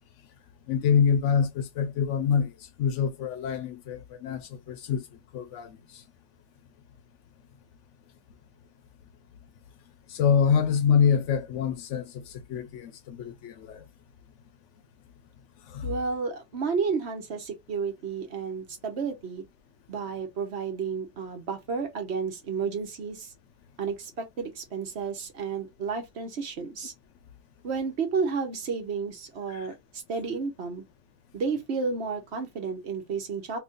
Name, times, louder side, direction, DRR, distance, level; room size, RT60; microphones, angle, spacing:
voice 1, 0.7-2.5 2.8-5.0 5.3-5.8 10.1-13.8 15.7-15.9 29.5-29.7, left 7 dB, 85° left, 1.0 m, -26 dB
voice 2, 15.8-19.4 19.9-23.3 23.8-26.9 27.6-30.8 31.3-33.6, right 5 dB, 65° right, 1.2 m, -31 dB
2.9 x 2.6 x 3.7 m
omnidirectional pair, 1.2 m